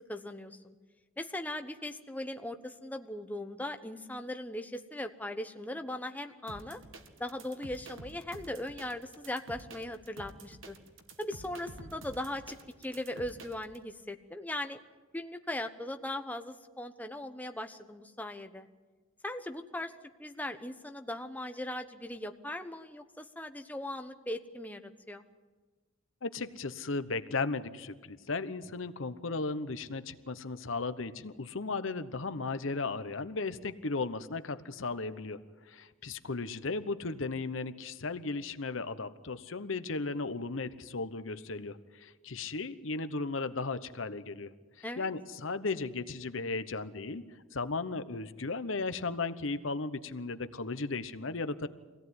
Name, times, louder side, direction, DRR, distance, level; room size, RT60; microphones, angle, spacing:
voice 1, 0.1-0.7 1.2-6.8 7.2-10.8 11.2-12.6 12.8-14.8 15.1-18.7 19.2-19.9 20.2-25.2 44.8-45.1, left 1 dB, 10° left, 6 dB, 1.0 m, -39 dB
sound 1, 6.5-13.8, right 2 dB, 75° right, 2.2 m, -49 dB
voice 2, 26.2-35.4 35.7-44.5 45.0-47.2 47.5-51.7, left 3 dB, 75° left, 12 dB, 1.0 m, -35 dB
24.5 x 17.5 x 9.5 m, 1.3 s
head